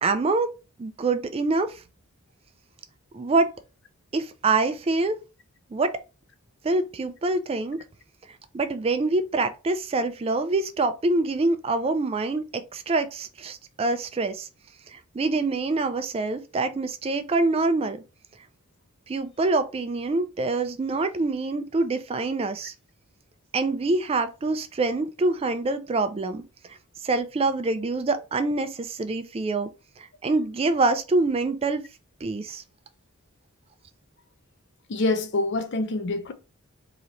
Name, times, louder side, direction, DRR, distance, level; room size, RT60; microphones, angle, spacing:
voice 1, 0.0-0.5 0.8-1.8 3.1-3.5 4.1-5.2 5.7-5.9 6.6-7.8 8.5-14.5 14.9-18.0 19.1-22.7 23.5-26.4 26.7-26.8 27.0-29.7 30.0-31.8 32.2-32.6, right 3 dB, 25° right, 0.3 m, -25 dB
voice 2, 34.9-36.3, left 2 dB, 50° left, 0.5 m, -26 dB
3.9 x 2.8 x 3.1 m
head